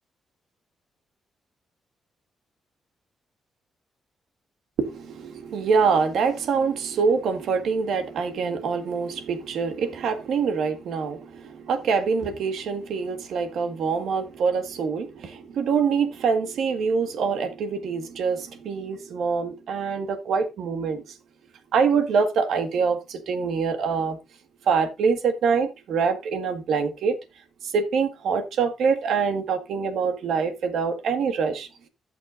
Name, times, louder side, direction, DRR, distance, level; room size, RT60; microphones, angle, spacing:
voice 1, 4.8-21.0 21.7-24.2 24.7-27.1 27.6-31.7, right 5 dB, 80° right, 1.8 m, -25 dB
15.5 x 6.0 x 2.6 m
cardioid pair, 80°, 0 cm